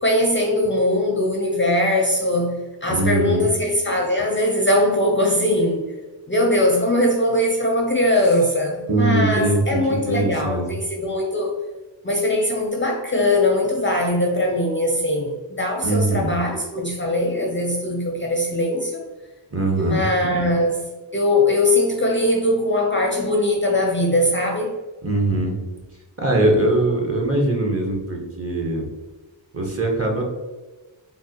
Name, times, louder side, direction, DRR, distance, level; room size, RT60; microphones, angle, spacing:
voice 1, 0.0-5.9 6.3-11.5 12.0-19.0 19.7-20.8 21.1-24.7, left 1 dB, 25° left, 0 dB, 0.4 m, -21 dB
voice 2, 2.9-3.4 8.9-9.8 10.1-10.7 15.8-16.3 19.5-20.0 25.0-25.6 26.2-28.9 29.5-30.2, right 2 dB, 30° right, 0 dB, 0.7 m, -21 dB
3.4 x 2.1 x 2.7 m, 1.2 s
cardioid pair, 70°, 47 cm